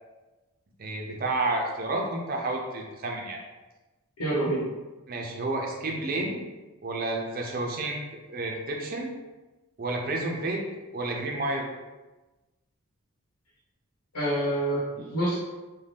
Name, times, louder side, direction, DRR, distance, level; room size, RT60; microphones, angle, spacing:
voice 1, 0.8-3.4 5.1-6.4 6.8-8.0 8.3-9.1 9.8-10.6 10.9-11.7, right 2 dB, 40° right, 1 dB, 0.4 m, -30 dB
voice 2, 4.2-4.7 14.1-15.4, right 1 dB, 85° left, -7 dB, 1.0 m, -27 dB
2.6 x 2.1 x 3.3 m, 1.2 s
head